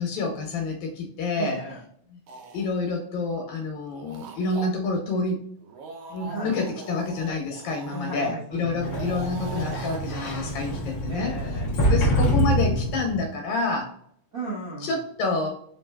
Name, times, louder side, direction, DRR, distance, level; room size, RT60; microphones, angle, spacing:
voice 1, 0.0-1.6 2.5-5.4 6.1-11.3 11.8-13.9 14.9-15.5, left 3 dB, 80° left, 2 dB, 2.1 m, -28 dB
voice 2, 1.3-1.8 6.2-6.6 7.9-9.0 11.1-12.2 14.3-15.0, right 2 dB, 70° right, -6 dB, 0.8 m, -35 dB
sound 1, 2.3-2.7 3.8-4.7 5.6-8.3 8.8-10.0, right 3 dB, 85° right, 1.3 m, -41 dB
Sliding door, 8.6-13.3, equal, 65° left, 0.9 m, -25 dB
4.9 x 3.2 x 2.2 m, 0.65 s
omnidirectional pair, 3.4 m